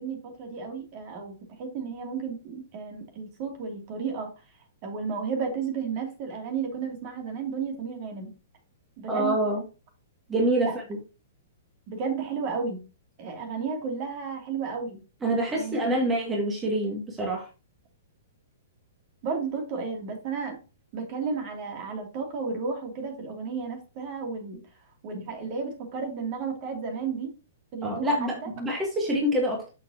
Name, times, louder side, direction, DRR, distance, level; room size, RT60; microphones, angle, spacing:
voice 1, 0.0-1.3 1.6-4.3 4.8-8.3 9.0-9.4 10.6-10.7 11.9-12.8 13.2-15.0 15.5-15.9 19.2-20.6 20.9-24.6 25.0-27.3 27.7-28.5, right 5 dB, 40° right, 3 dB, 2.6 m, -33 dB
voice 2, 9.1-9.6 10.3-11.0 15.2-17.5 27.8-29.6, right 1 dB, 15° right, 0 dB, 2.0 m, -26 dB
7.5 x 6.6 x 2.8 m, 0.31 s
figure-of-eight pair, 110°, 0 cm